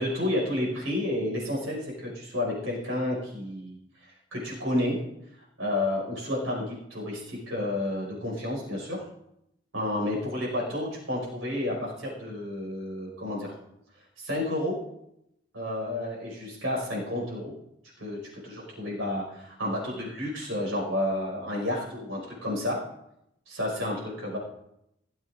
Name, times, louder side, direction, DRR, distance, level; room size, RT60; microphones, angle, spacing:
voice 1, 0.0-3.8 4.3-5.0 5.6-9.0 9.7-13.5 14.2-14.8 15.5-17.5 18.0-18.2 18.4-22.8 23.5-24.4, left 1 dB, 85° right, -3 dB, 5.2 m, -30 dB
17.5 x 7.5 x 3.6 m, 0.79 s
head